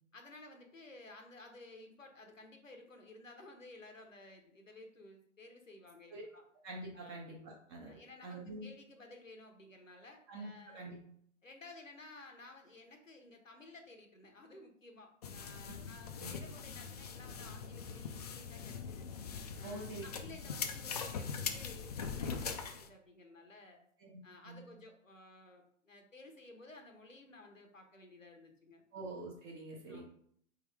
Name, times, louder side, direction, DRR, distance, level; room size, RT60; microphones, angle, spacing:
voice 1, 0.1-6.4 6.9-7.2 7.9-10.8 11.4-19.1 19.6-23.8 24.2-28.8 29.9-30.0, left 2 dB, 90° left, 4 dB, 1.0 m, -55 dB
voice 2, 6.6-8.0 8.2-8.7 10.3-11.0 15.7-15.8 16.2-16.3 19.6-20.0 24.0-24.1 24.4-24.7 28.9-30.0, right 2 dB, 20° right, -2 dB, 0.6 m, -46 dB
sound 1, 15.2-22.9, left 6 dB, 35° left, 0.4 m, -42 dB
4.3 x 3.5 x 3.3 m, 0.65 s
figure-of-eight pair, 115°, 38 cm